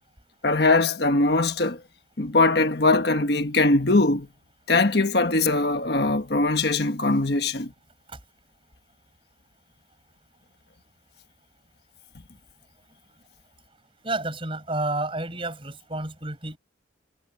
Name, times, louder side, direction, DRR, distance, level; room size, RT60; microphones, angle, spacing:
voice 1, 0.4-1.8 2.2-4.3 4.7-7.7, left 2 dB, 60° left, 1.4 m, -21 dB
voice 2, 14.0-16.6, right 2 dB, 30° right, 6.4 m, -30 dB
head